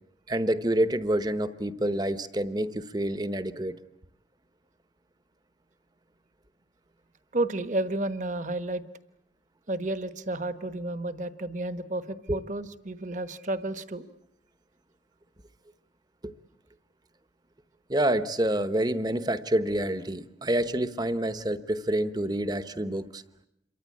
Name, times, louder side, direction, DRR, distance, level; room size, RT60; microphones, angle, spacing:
voice 1, 0.3-3.7 12.3-12.4 16.2-16.3 17.9-23.2, right 1 dB, 20° right, 12 dB, 1.0 m, -27 dB
voice 2, 7.3-8.8 9.7-14.0, right 2 dB, 40° right, 11 dB, 1.2 m, -31 dB
27.5 x 23.5 x 8.5 m, 0.80 s
head